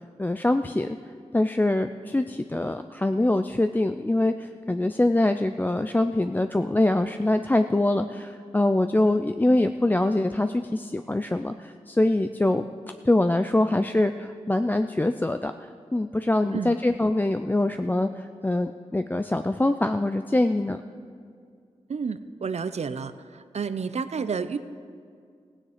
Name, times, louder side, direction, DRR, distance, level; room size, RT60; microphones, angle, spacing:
voice 1, 0.2-1.0 1.3-12.7 13.0-20.8, left 1 dB, 15° left, 8 dB, 0.4 m, -24 dB
voice 2, 21.9-23.1 23.5-24.6, right 5 dB, 70° right, 12 dB, 0.6 m, -30 dB
16.0 x 9.7 x 5.0 m, 2.2 s
wide cardioid pair, 70°, 12 cm